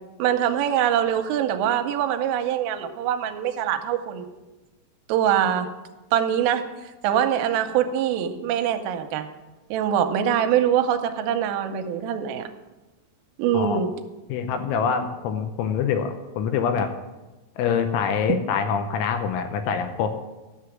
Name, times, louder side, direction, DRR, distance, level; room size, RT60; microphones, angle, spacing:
voice 1, 0.2-4.3 5.1-5.7 6.1-6.7 7.0-9.3 9.7-12.5 13.4-13.9 18.3-18.4, right 9 dB, 85° right, 7 dB, 3.2 m, -23 dB
voice 2, 14.3-16.9 17.6-20.1, left 6 dB, 80° left, 7 dB, 3.0 m, -25 dB
11.5 x 6.8 x 7.3 m, 1.1 s
omnidirectional pair, 6.0 m